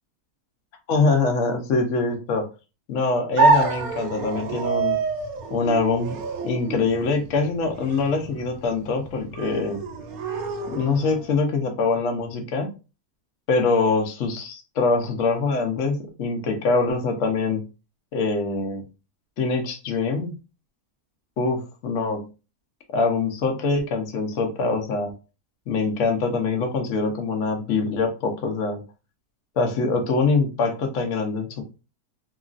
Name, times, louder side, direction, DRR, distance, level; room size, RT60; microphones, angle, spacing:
voice 1, 0.9-2.4 2.9-5.0 5.5-6.2 6.4-9.8 10.7-12.7 13.5-17.6 18.1-18.8 19.4-20.3 21.4-22.2 22.9-25.1 25.7-28.8 29.6-31.6, left 4 dB, 60° left, 4 dB, 1.0 m, -24 dB
sound 1, 3.4-11.3, right 4 dB, 70° right, 1.0 m, -26 dB
2.9 x 2.6 x 2.4 m, 0.31 s
omnidirectional pair, 1.7 m